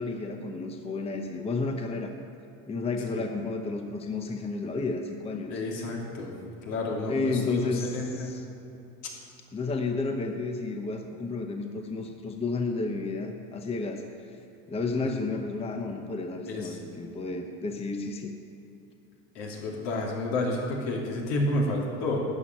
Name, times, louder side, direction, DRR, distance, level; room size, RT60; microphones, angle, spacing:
voice 1, 0.0-2.1 2.7-5.5 7.1-8.4 9.5-14.0 14.7-18.3, left 3 dB, 15° left, 4 dB, 0.8 m, -31 dB
voice 2, 5.5-6.3 6.6-8.3 14.9-15.1 16.5-16.8 19.3-22.2, left 2 dB, 75° left, -2 dB, 3.0 m, -30 dB
12.0 x 6.2 x 9.5 m, 2.9 s
supercardioid pair, 125°, 37 cm